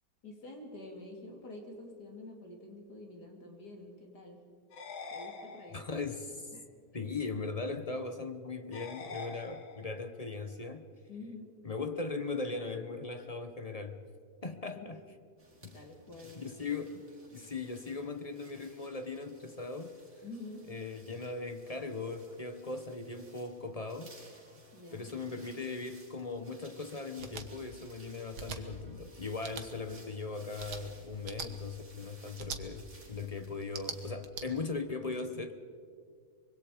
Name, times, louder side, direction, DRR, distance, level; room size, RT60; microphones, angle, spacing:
voice 1, 0.2-4.4 5.1-5.9 6.5-6.7 11.1-11.6 14.8-15.0 15.7-16.5 20.2-20.7 24.7-25.1, left 2 dB, 55° left, 2 dB, 3.5 m, -48 dB
sound 1, 4.7-6.1 8.7-10.1, left 4 dB, 80° left, 2.4 m, -45 dB
voice 2, 5.7-6.5 6.9-10.9 11.6-14.0 14.4-15.0 15.6-15.8 16.3-17.1 17.3-19.9 20.7-24.1 24.9-35.7, left 3 dB, 30° left, 8 dB, 0.7 m, -39 dB
sound 2, 15.4-34.1, right 2 dB, 40° right, 4.9 m, -59 dB
sound 3, 27.2-27.5 28.3-28.6 29.4-29.7 30.6-30.8 31.2-31.5 32.4-32.6 33.6-34.4, right 6 dB, 80° right, 2.2 m, -41 dB
25.0 x 22.0 x 5.1 m, 2.2 s
omnidirectional pair, 2.1 m